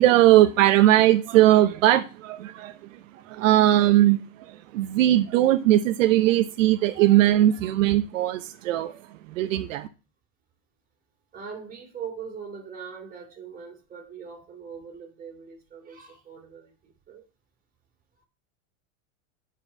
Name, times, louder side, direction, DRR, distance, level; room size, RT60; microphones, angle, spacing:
voice 1, 0.0-3.0 3.3-9.9, right 14 dB, 75° right, 0.9 m, -20 dB
voice 2, 11.3-17.2, right 6 dB, 20° right, 3.2 m, -41 dB
9.9 x 4.8 x 5.8 m
supercardioid pair, 130°, 38 cm